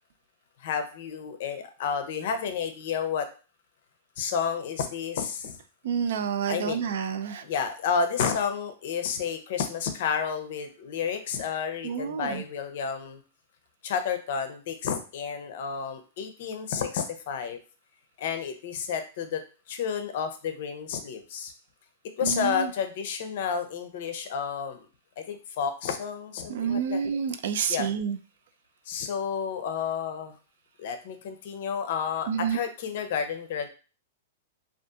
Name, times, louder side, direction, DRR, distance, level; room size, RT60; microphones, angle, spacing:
voice 1, 0.6-3.3 4.2-5.6 6.5-6.8 7.4-13.2 13.8-17.6 18.2-19.4 19.7-21.5 22.2-24.8 25.2-27.0 27.7-27.9 28.9-30.3 30.8-33.7, left 7 dB, 60° left, 8 dB, 0.5 m, -31 dB
voice 2, 5.8-7.4 11.8-12.4 22.2-22.7 26.5-28.2 32.3-32.6, right 7 dB, 70° right, 10 dB, 0.3 m, -29 dB
2.6 x 2.4 x 2.3 m, 0.36 s
hypercardioid pair, 135°, 0 cm